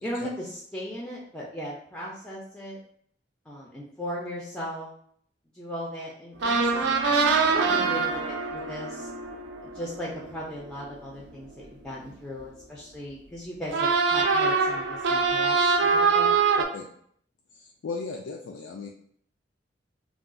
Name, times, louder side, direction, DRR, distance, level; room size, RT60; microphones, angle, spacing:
voice 1, 0.0-2.8 3.5-4.9 5.5-9.1 9.6-16.3, equal, 5° left, -4 dB, 0.4 m, -37 dB
sound 1, 6.4-11.2 13.7-16.7, right 4 dB, 75° right, 0.4 m, -24 dB
voice 2, 16.6-16.9 17.5-18.9, left 4 dB, 85° left, 0 dB, 0.3 m, -36 dB
2.3 x 2.2 x 3.6 m, 0.65 s
head